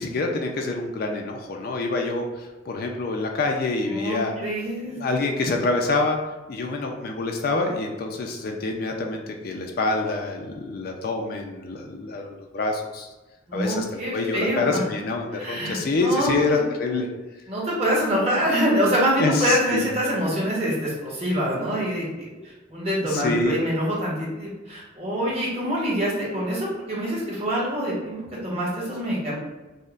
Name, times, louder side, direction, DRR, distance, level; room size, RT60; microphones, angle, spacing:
voice 1, 0.0-4.3 4.9-6.2 6.5-13.1 13.5-17.1 19.2-19.8 23.0-23.6, left 3 dB, 50° left, 2 dB, 0.4 m, -26 dB
voice 2, 3.9-5.0 13.5-14.8 15.3-16.6 17.5-28.2 28.4-29.3, equal, 35° right, -6 dB, 1.1 m, -25 dB
5.1 x 2.1 x 2.4 m, 1.1 s
head